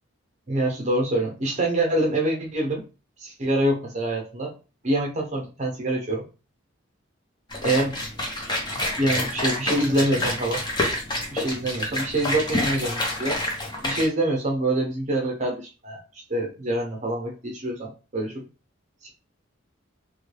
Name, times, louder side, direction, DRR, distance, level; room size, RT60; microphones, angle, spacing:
voice 1, 0.5-2.8 3.2-4.5 4.8-6.2 7.6-8.0 9.0-10.6 11.3-13.4 13.8-16.0 16.3-18.4 19.0-19.1, right 1 dB, 35° right, 0 dB, 0.8 m, -25 dB
sound 1, 7.5-14.1, left 1 dB, 20° left, 0.7 m, -28 dB
3.4 x 2.3 x 3.2 m, 0.33 s
head